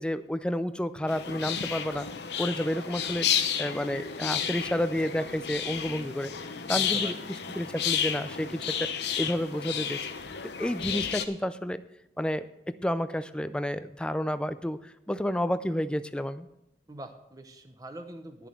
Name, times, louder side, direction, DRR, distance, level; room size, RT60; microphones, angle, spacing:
voice 1, 0.0-2.1 2.4-3.3 3.6-6.3 6.7-7.2 7.5-8.9 9.2-10.0 10.6-11.8 12.2-16.5, equal, 5° left, 12 dB, 0.4 m, -30 dB
sound 1, 1.1-11.3, left 8 dB, 75° left, 0.9 m, -32 dB
voice 2, 6.7-7.3 16.9-18.5, right 1 dB, 20° right, 7 dB, 0.7 m, -44 dB
10.5 x 7.0 x 7.7 m, 0.86 s
head